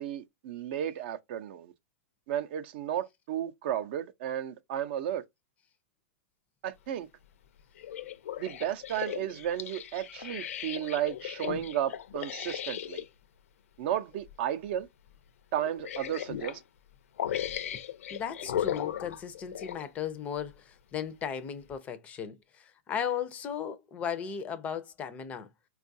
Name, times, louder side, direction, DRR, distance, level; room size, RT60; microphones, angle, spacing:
voice 1, 0.0-1.7 2.3-5.2 6.6-7.1 8.4-13.0 13.8-14.9 15.5-16.6, right 10 dB, 45° right, 0.5 m, -33 dB
sound 1, 7.8-13.1 14.1-14.3 14.7-14.8 15.6-16.6 17.2-19.9 20.5-20.6, left 10 dB, 75° left, 0.6 m, -37 dB
voice 2, 18.1-25.5, left 8 dB, 20° left, 0.5 m, -36 dB
4.4 x 2.3 x 2.6 m
hypercardioid pair, 155°, 8 cm